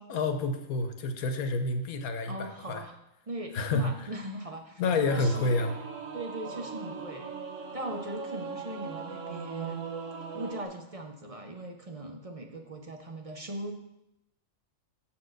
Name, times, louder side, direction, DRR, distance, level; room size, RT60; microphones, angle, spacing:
voice 1, 0.1-2.8 3.5-3.9 4.8-5.8, left 3 dB, 85° left, 7 dB, 1.3 m, -29 dB
voice 2, 2.3-3.0 3.3-4.8 5.1-5.6 6.1-7.3 7.7-9.8 10.3-13.7, right 1 dB, 45° right, 3 dB, 0.4 m, -39 dB
Singing / Musical instrument, 5.0-10.7, right 5 dB, 65° right, 1.3 m, -39 dB
7.5 x 4.4 x 6.4 m, 0.88 s
omnidirectional pair, 1.5 m